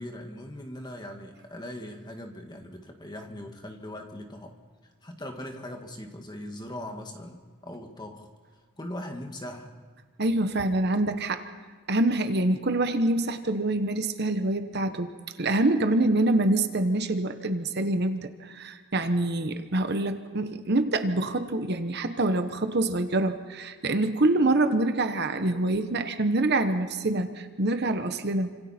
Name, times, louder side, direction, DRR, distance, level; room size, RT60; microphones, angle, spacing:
voice 1, 0.0-4.6 4.8-8.3 8.8-9.7, left 1 dB, 20° left, 3 dB, 1.9 m, -40 dB
voice 2, 10.2-11.4 11.9-15.1 15.4-28.6, right 2 dB, 50° right, 8 dB, 1.1 m, -25 dB
29.0 x 26.0 x 4.4 m, 1.4 s
head